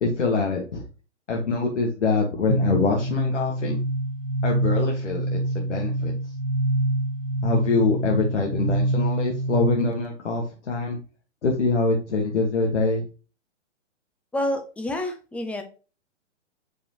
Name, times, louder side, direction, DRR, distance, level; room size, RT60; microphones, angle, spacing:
voice 1, 0.0-0.8 1.3-3.8 4.4-6.1 7.4-11.0 11.4-13.0, left 3 dB, 80° left, 0 dB, 1.7 m, -24 dB
sound 1, 2.5-10.0, right 1 dB, 45° right, 1.6 m, -26 dB
voice 2, 14.3-15.6, left 1 dB, 5° left, 5 dB, 0.5 m, -28 dB
6.7 x 4.9 x 3.0 m, 0.34 s
hypercardioid pair, 130°, 35 cm